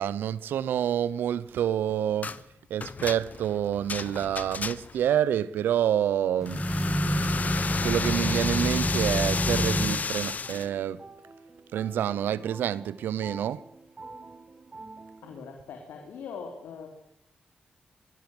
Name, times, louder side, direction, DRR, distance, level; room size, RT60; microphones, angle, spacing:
voice 1, 0.0-2.4 2.7-6.7 7.5-11.0 11.7-13.6, right 10 dB, 90° right, 0.8 m, -28 dB
sound 1, 2.2-2.4 2.8-5.1 6.5-10.7, left 5 dB, 50° left, 1.0 m, -32 dB
sound 2, 6.4-10.1, equal, 5° right, 1.7 m, -28 dB
sound 3, 10.4-15.4, right 3 dB, 40° right, 3.1 m, -47 dB
voice 2, 15.2-16.9, left 6 dB, 90° left, 3.3 m, -41 dB
23.5 x 17.0 x 7.9 m
cardioid pair, 55°, 3 cm